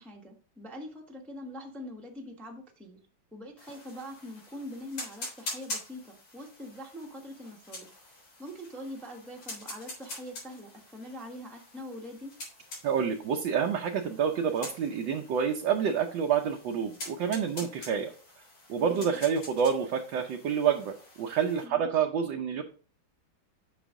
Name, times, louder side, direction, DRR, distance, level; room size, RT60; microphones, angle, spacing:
voice 1, 0.0-3.0 3.3-7.9 8.4-12.3 18.8-19.2 21.6-21.9, equal, ahead, 0 dB, 1.0 m, -43 dB
sound 1, 3.6-21.7, left 2 dB, 85° left, 4.6 m, -45 dB
voice 2, 12.8-18.1 18.7-22.6, right 7 dB, 70° right, 2 dB, 1.5 m, -28 dB
8.2 x 6.0 x 3.7 m, 0.40 s
omnidirectional pair, 2.2 m